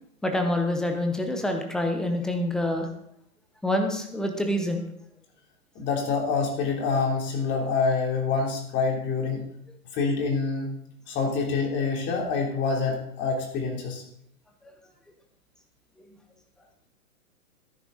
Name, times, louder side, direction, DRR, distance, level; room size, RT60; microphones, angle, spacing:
voice 1, 0.2-2.9 3.6-4.8, left 1 dB, ahead, 4 dB, 0.5 m, -26 dB
voice 2, 5.7-9.4 9.9-10.8 11.1-14.0, left 4 dB, 25° left, 0 dB, 3.4 m, -26 dB
13.5 x 10.5 x 4.1 m, 0.74 s
hypercardioid pair, 135°, 44 cm